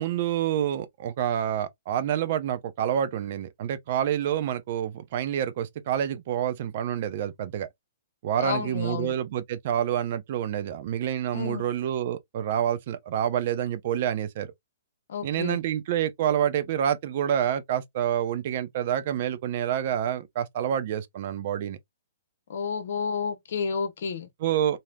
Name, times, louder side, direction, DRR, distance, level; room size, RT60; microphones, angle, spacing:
voice 1, 0.0-7.7 8.2-14.5 15.2-21.8 24.4-24.8, right 10 dB, 50° right, 0.5 m, -28 dB
voice 2, 8.4-9.1 11.3-11.6 15.1-15.6 22.5-24.3, left 6 dB, 60° left, 0.9 m, -31 dB
3.2 x 2.7 x 2.3 m
hypercardioid pair, 125°, 0 cm